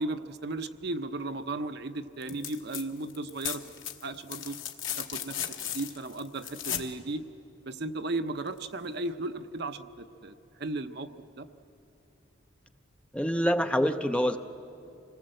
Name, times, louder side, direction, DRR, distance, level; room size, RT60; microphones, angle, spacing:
voice 1, 0.0-3.6 4.0-4.6 5.0-7.2 7.7-11.1 11.4-11.5, right 2 dB, 55° right, 9 dB, 0.7 m, -35 dB
sound 1, 2.2-2.8 3.1-6.9 8.6-8.7, left 10 dB, 75° left, 1.3 m, -36 dB
voice 2, 13.1-14.4, equal, 5° left, 7 dB, 0.5 m, -26 dB
26.0 x 19.0 x 7.7 m, 2.8 s
head